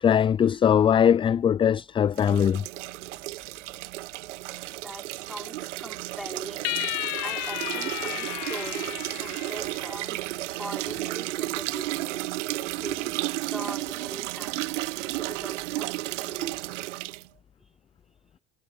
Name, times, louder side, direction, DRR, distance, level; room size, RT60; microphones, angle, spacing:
voice 1, 0.0-2.6, left 8 dB, 15° left, 0.3 m, -21 dB
sound 1, 2.1-17.3, right 18 dB, 70° right, 1.2 m, -33 dB
voice 2, 4.5-6.9 7.2-10.2 10.6-12.4 12.8-14.9 15.2-16.9, equal, ahead, 5.4 m, -42 dB
sound 2, 6.6-10.2, left 19 dB, 50° left, 1.8 m, -33 dB
hypercardioid pair, 75°, 37 cm